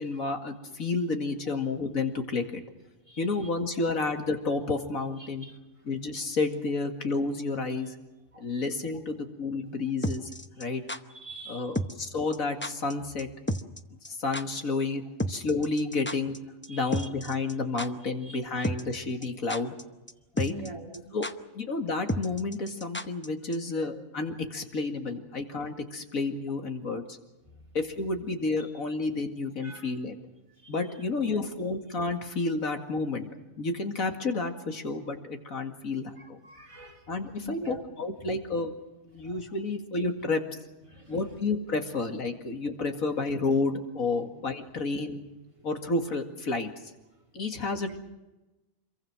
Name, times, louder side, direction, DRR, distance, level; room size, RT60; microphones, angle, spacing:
voice 1, 0.0-2.4 3.2-5.5 5.8-8.0 8.4-10.3 10.6-10.8 11.5-13.3 13.9-15.0 15.3-16.4 16.7-19.7 20.3-20.5 21.1-21.3 21.5-27.2 27.7-30.2 30.7-33.3 33.6-36.4 37.1-38.7 39.0-40.4 41.1-45.2 45.6-46.7 47.3-48.0, left 3 dB, 85° left, 5 dB, 2.6 m, -30 dB
sound 1, 10.0-11.0 11.8-12.1 12.3-12.4 12.6-12.9 13.2-13.3 13.5-13.8 14.0-14.1 14.3-14.4 15.2-16.4 16.6-16.7 16.9-17.5 17.8-17.9 18.6-19.0 19.2-19.8 20.1-20.2 20.4-20.7 20.9-21.0 21.2-21.3 22.1-23.3 23.5-23.6, equal, 10° left, 0.7 m, -31 dB
voice 2, 11.2-11.7 16.7-17.1 18.2-18.6 19.5-19.6 20.4-21.1 23.8-23.9 29.6-29.9 30.6-30.7 31.3-31.4 36.2-37.0 37.4-37.8 39.2-39.4 40.9-41.2 47.8-48.0, right 1 dB, 25° right, 0 dB, 3.4 m, -44 dB
26.5 x 23.0 x 6.1 m, 1.0 s
omnidirectional pair, 1.4 m